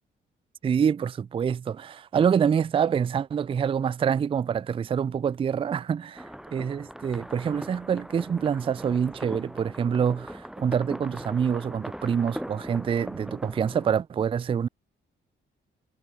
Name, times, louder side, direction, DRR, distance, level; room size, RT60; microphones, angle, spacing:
voice 1, 0.6-14.7, right 7 dB, 25° right, 0.4 m, -26 dB
sound 1, 6.1-13.9, equal, 5° right, 1.9 m, -40 dB
cardioid pair, 90°, 20 cm